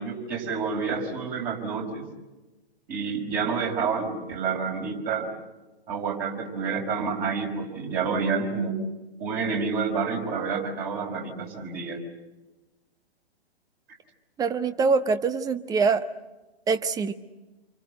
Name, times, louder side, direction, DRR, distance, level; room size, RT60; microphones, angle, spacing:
voice 1, 0.0-2.1 2.9-5.3 5.9-8.8 9.2-12.0, right 5 dB, 30° right, 2 dB, 5.3 m, -29 dB
voice 2, 14.4-16.0 16.7-17.1, right 4 dB, 10° right, 11 dB, 0.8 m, -24 dB
28.0 x 24.5 x 8.0 m, 1.1 s
figure-of-eight pair, 125°, 31 cm